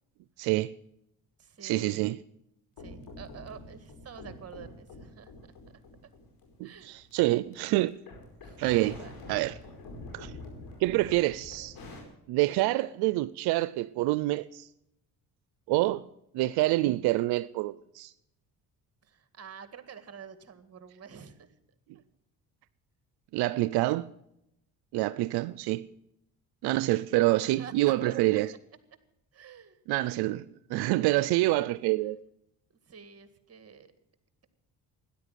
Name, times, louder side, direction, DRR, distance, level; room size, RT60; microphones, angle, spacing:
voice 1, 0.4-0.7 1.6-2.2 6.6-7.9 8.6-9.0 9.3-9.6 10.1-10.3 10.8-11.8 12.3-14.7 15.7-16.0 16.3-18.1 23.3-24.1 24.9-25.9 26.6-28.5 29.9-32.2, right 18 dB, 90° right, 0.6 m, -27 dB
voice 2, 1.4-2.0 2.8-5.3 6.6-6.9 7.2-7.7 8.4-8.6 9.0-9.1 19.0-21.6 21.9-22.0 27.4-28.4 29.3-29.8 32.9-33.9, right 7 dB, 40° right, 2.0 m, -48 dB
sound 1, 2.8-7.5 7.9-12.0, left 2 dB, 65° left, 5.0 m, -46 dB
13.5 x 10.5 x 9.2 m
cardioid pair, 80°, 38 cm